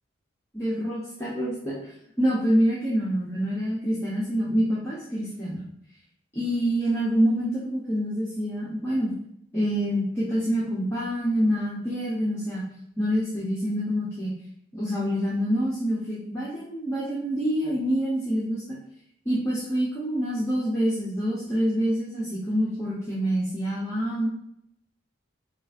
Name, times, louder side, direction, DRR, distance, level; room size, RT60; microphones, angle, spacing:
voice 1, 0.5-5.6 6.3-9.1 9.5-12.6 13.0-14.3 14.7-18.8 19.2-24.3, equal, 15° left, -8 dB, 0.9 m, -26 dB
5.4 x 2.5 x 2.6 m, 0.73 s
head